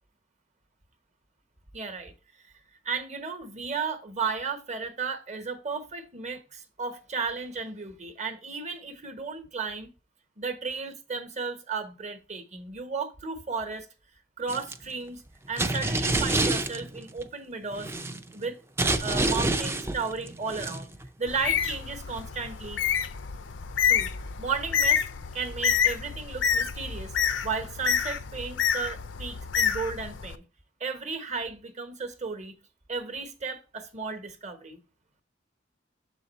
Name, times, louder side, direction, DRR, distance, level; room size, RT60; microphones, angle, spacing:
voice 1, 1.7-2.1 2.8-9.9 10.4-13.9 14.4-15.2 15.5-17.9 18.3-18.6 19.0-22.8 23.9-24.1 24.4-25.0 25.3-27.1 27.4-30.4 30.8-32.6 32.9-34.8, right 5 dB, 40° right, 1.0 m, -34 dB
sound 1, 14.5-14.8 15.6-17.2 17.7-18.4 18.8-21.1 21.4-21.7, right 2 dB, 15° right, 0.4 m, -28 dB
Bird, 21.3-30.3, left 7 dB, 75° left, 0.5 m, -28 dB
6.8 x 4.0 x 4.0 m
head